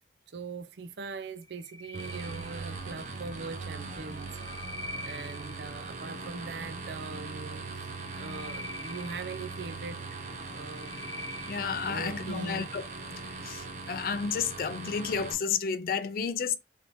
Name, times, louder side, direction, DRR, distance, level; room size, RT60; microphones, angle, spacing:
voice 1, 0.3-4.4 5.0-7.9 8.1-10.2 10.5-11.0 11.9-12.7, right 4 dB, 75° right, 0.4 m, -41 dB
sound 1, 1.4-3.0 4.0-5.8 7.8-9.9 10.4-11.9, left 1 dB, 80° left, 0.9 m, -45 dB
sound 2, 1.9-15.3, right 3 dB, 45° right, 0.7 m, -40 dB
voice 2, 11.5-12.9 13.2-16.6, left 6 dB, 55° left, 0.4 m, -32 dB
3.3 x 2.8 x 2.6 m
head